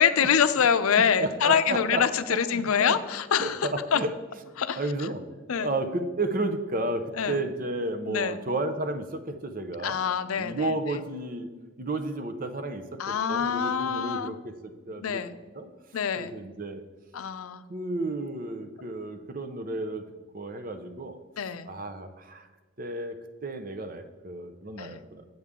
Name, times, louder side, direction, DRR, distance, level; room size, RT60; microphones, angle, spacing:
voice 1, 0.0-4.0 4.6-5.1 5.5-5.7 7.2-7.4 8.1-8.3 9.8-10.7 13.0-14.3 14.9-15.3 15.9-16.3 17.1-17.6 21.4-21.7 24.8-25.0, left 7 dB, 90° left, 12 dB, 0.5 m, -25 dB
voice 2, 1.2-2.0 2.3-2.4 2.8-3.0 3.4-4.1 4.8-5.2 5.5-10.1 10.4-11.5 11.8-14.5 14.9-15.2 15.5-15.7 16.2-16.8 17.7-20.0 20.3-21.2 21.7-22.5 22.8-25.2, right 2 dB, 40° right, 8 dB, 0.7 m, -32 dB
8.4 x 7.8 x 3.6 m, 1.2 s
head